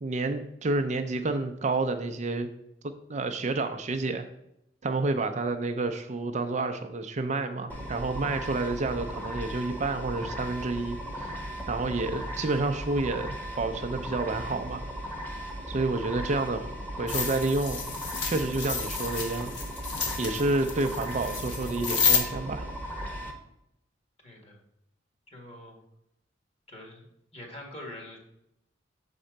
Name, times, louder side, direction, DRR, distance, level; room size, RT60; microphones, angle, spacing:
voice 1, 0.0-2.5 2.8-4.2 4.8-11.3 11.7-14.8 15.7-16.7 17.0-17.8 18.2-19.5 20.2-22.6, right 3 dB, 40° right, 7 dB, 0.5 m, -29 dB
sound 1, 7.7-23.3, equal, 10° left, 1.1 m, -37 dB
sound 2, 17.1-22.2, left 6 dB, 65° left, 1.2 m, -30 dB
voice 2, 24.2-24.6 25.3-25.8 26.7-27.1 27.3-28.2, left 1 dB, 35° left, 1 dB, 1.7 m, -44 dB
6.8 x 4.3 x 5.1 m, 0.82 s
head